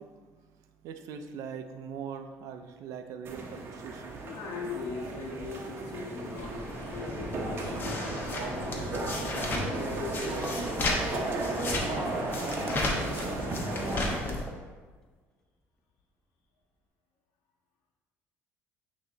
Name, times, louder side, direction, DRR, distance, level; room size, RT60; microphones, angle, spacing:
voice 1, 0.0-4.2, right 7 dB, 70° right, 7 dB, 0.6 m, -42 dB
sound 1, 3.2-14.1, right 2 dB, 40° right, 1.0 m, -35 dB
voice 2, 4.2-12.2, left 4 dB, 65° left, -2 dB, 1.2 m, -42 dB
sound 2, 6.4-14.4, left 2 dB, 35° left, 1.1 m, -34 dB
Hammer / Wood, 10.4-13.3 13.8-14.8, left 1 dB, 10° left, 0.8 m, -47 dB
8.6 x 3.0 x 4.0 m, 1.4 s
cardioid pair, 105°, 6 cm